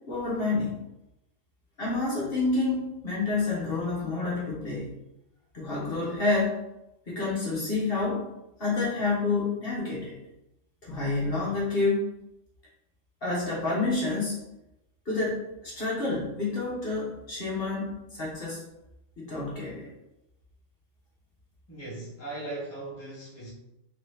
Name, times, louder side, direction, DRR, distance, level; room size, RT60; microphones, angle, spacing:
voice 1, 0.1-0.8 1.8-4.9 5.5-6.6 7.1-8.3 8.6-10.2 10.8-12.1 13.2-14.4 15.1-18.6 19.2-19.9, left 3 dB, 50° left, -6 dB, 1.1 m, -28 dB
voice 2, 21.7-23.5, right 2 dB, 15° left, -5 dB, 0.9 m, -38 dB
3.4 x 2.9 x 3.3 m, 0.90 s
omnidirectional pair, 1.4 m